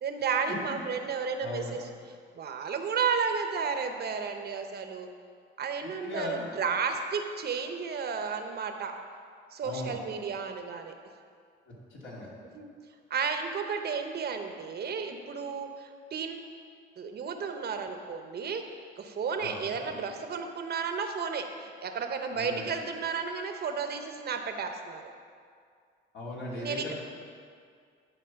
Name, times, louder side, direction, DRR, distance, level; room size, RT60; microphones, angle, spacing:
voice 1, 0.0-1.8 2.3-5.1 5.6-9.0 9.5-10.9 12.5-12.7 13.1-16.5 17.0-18.7 19.0-25.1 26.5-26.9, right 5 dB, 55° right, 6 dB, 0.8 m, -33 dB
voice 2, 1.4-1.7 5.8-6.5 9.6-10.0 11.7-12.3 19.4-19.6 22.3-22.6 26.1-26.9, left 2 dB, 70° left, -5 dB, 2.6 m, -38 dB
11.0 x 4.5 x 5.7 m, 2.1 s
cardioid pair, 90°, 20 cm